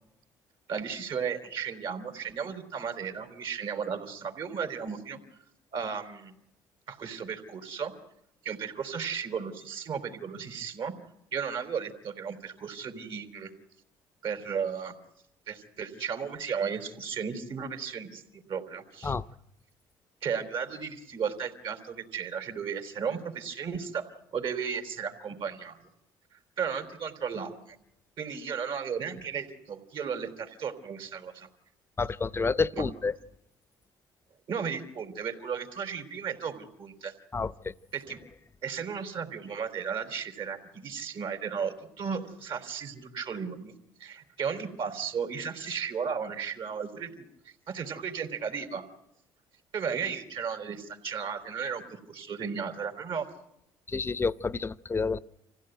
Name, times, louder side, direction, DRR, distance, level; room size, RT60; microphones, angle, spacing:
voice 1, 0.7-5.2 5.7-6.3 6.9-7.9 8.4-10.9 11.3-13.5 14.2-14.9 15.5-19.1 20.2-25.8 26.3-27.8 28.2-31.5 32.8-32.9 34.5-37.1 37.9-38.2 38.6-43.7 44.0-48.8 49.7-53.3, right 6 dB, 60° right, 3.9 m, -35 dB
voice 2, 32.0-33.1 37.3-37.5 53.9-55.2, left 4 dB, 25° left, 0.8 m, -29 dB
26.5 x 16.0 x 9.2 m
supercardioid pair, 75°, 10 cm